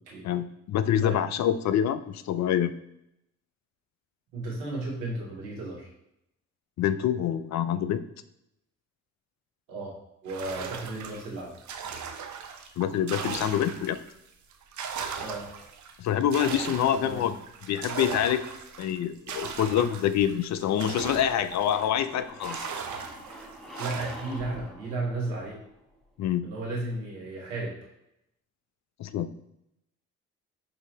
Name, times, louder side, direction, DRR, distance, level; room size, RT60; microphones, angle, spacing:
voice 1, 0.2-2.7 6.8-8.0 12.8-14.0 16.0-17.4 17.7-18.4 18.8-22.6 26.2-26.4 29.0-29.3, left 10 dB, 45° left, 12 dB, 0.4 m, -26 dB
voice 2, 4.3-5.9 9.7-9.9 10.2-11.5 15.2-15.5 16.9-17.3 23.8-25.6 26.4-27.8, right 2 dB, 85° right, -4 dB, 1.3 m, -34 dB
sound 1, 10.3-14.1 14.5-22.0 22.4-24.4, right 6 dB, 50° right, 0.7 m, -38 dB
sound 2, 21.7-26.2, equal, ahead, 0.9 m, -45 dB
5.5 x 2.7 x 3.0 m, 0.82 s
hypercardioid pair, 40°, 39 cm